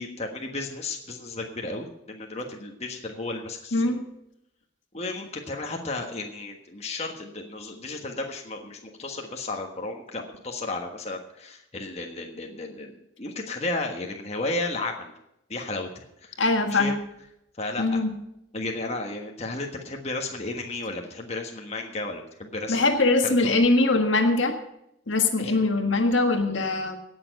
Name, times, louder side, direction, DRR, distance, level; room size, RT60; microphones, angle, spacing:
voice 1, 0.0-3.8 4.9-15.1 15.5-16.4 16.7-16.9 17.6-17.8 18.5-22.8 23.4-23.6 25.4-25.6, left 2 dB, 30° left, 2 dB, 1.4 m, -33 dB
voice 2, 3.7-4.0 16.4-17.0 17.8-18.1 22.7-24.6 25.1-27.0, left 2 dB, 65° left, 5 dB, 1.6 m, -22 dB
17.5 x 7.0 x 6.5 m, 0.81 s
head